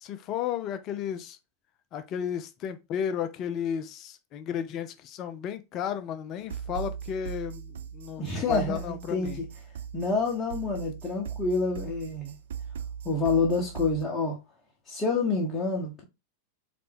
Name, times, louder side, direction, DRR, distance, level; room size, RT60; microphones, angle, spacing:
voice 1, 0.0-1.4 1.9-9.4, left 8 dB, 35° left, 0.6 m, -33 dB
sound 1, 6.4-14.0, right 8 dB, 60° right, 0.4 m, -39 dB
voice 2, 8.2-9.4 9.9-12.3 13.0-14.4 14.9-16.0, left 3 dB, 20° left, 1.1 m, -28 dB
4.0 x 3.3 x 3.4 m
figure-of-eight pair, 90°, 0 cm